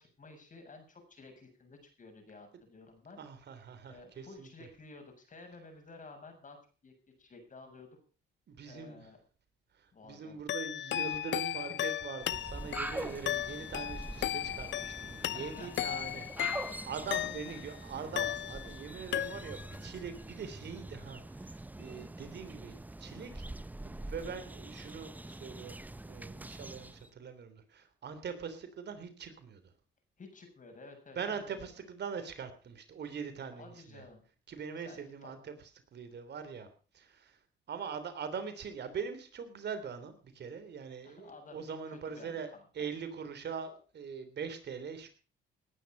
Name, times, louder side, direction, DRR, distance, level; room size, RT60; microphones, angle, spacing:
voice 1, 0.0-3.2 3.9-6.6 6.8-6.9 7.2-8.0 8.7-9.2 9.9-10.4 11.5-11.8 15.3-16.2 16.7-16.8 17.2-17.6 17.9-18.1 30.2-31.7 33.6-34.2 34.8-35.4 41.0-42.9, left 3 dB, 40° left, 5 dB, 7.3 m, -53 dB
voice 2, 3.2-4.5 8.5-9.1 9.7-29.6 31.1-34.0 34.5-35.5 35.9-37.4 37.7-45.1, right 6 dB, 60° right, 10 dB, 3.4 m, -42 dB
sound 1, 10.5-17.7 18.2-18.8 19.1-19.8, left 12 dB, 65° left, 0.6 m, -36 dB
sound 2, 12.2-27.1, right 2 dB, 10° right, 0.7 m, -44 dB
19.0 x 10.0 x 5.5 m, 0.37 s
cardioid pair, 90°, 20 cm